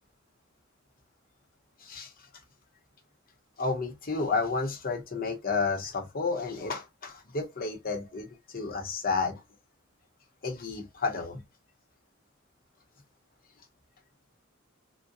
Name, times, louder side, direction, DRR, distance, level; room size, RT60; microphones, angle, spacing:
voice 1, 3.6-8.3 8.5-9.4 10.4-11.4, left 4 dB, 45° left, 0.9 m, -31 dB
3.6 x 2.2 x 2.6 m
head